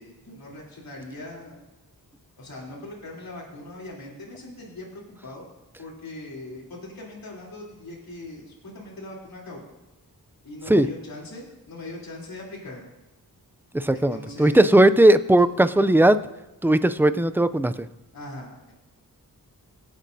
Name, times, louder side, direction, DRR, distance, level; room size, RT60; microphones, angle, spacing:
voice 1, 0.0-1.6 2.4-5.5 5.8-9.6 10.4-12.9 13.9-14.6 18.1-18.7, left 2 dB, 70° left, -4 dB, 3.4 m, -40 dB
voice 2, 13.7-16.2 16.6-17.9, right 1 dB, 5° right, 12 dB, 0.4 m, -18 dB
25.0 x 8.3 x 2.7 m, 0.98 s
wide cardioid pair, 115°, 36 cm